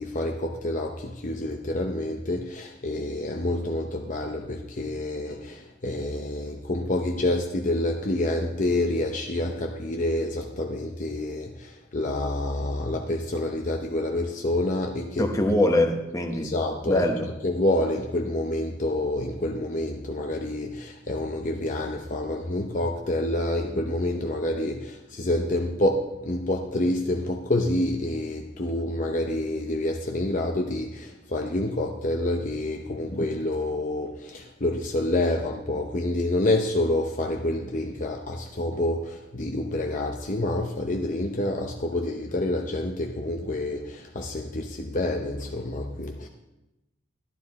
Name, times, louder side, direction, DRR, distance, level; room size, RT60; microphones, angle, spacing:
voice 1, 0.0-15.3 16.4-17.1 17.4-46.3, left 1 dB, 40° left, 2 dB, 0.7 m, -28 dB
voice 2, 15.2-16.5 16.9-17.3, left 1 dB, 15° left, 3 dB, 1.1 m, -23 dB
12.0 x 12.0 x 4.2 m, 0.96 s
head